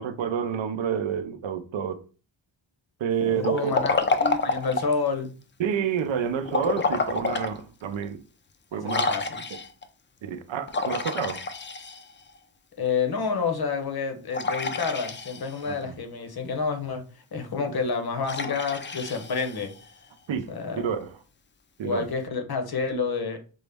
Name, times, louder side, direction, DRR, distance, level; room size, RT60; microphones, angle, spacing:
voice 1, 0.0-2.0 3.0-3.8 5.6-8.2 8.7-9.1 10.2-11.4 15.7-16.0 20.3-20.5 20.8-21.2 21.8-22.1, right 8 dB, 75° right, 0.6 m, -29 dB
voice 2, 3.3-3.9 4.2-5.3 8.8-9.4 12.8-17.0 17.3-19.7 20.5-20.8 21.8-23.4, left 5 dB, 55° left, 0.8 m, -29 dB
Liquid, 3.4-5.0 6.5-7.5 8.0-8.1 8.9-9.8 10.7-12.3 14.3-15.7 18.2-19.9, left 3 dB, 25° left, 0.4 m, -28 dB
5.3 x 2.0 x 3.4 m
wide cardioid pair, 125°, 46 cm